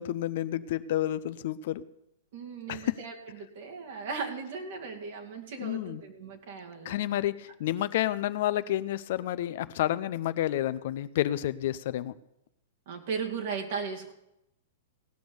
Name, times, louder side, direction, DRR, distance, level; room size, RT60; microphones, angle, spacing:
voice 1, 0.0-1.8 2.7-3.0 5.6-6.0 6.8-12.1, left 13 dB, 60° left, 15 dB, 0.5 m, -30 dB
voice 2, 2.3-3.1 3.5-7.0 12.9-14.1, right 5 dB, 60° right, 2 dB, 2.3 m, -37 dB
17.0 x 6.1 x 6.9 m, 0.84 s
hypercardioid pair, 115°, 0 cm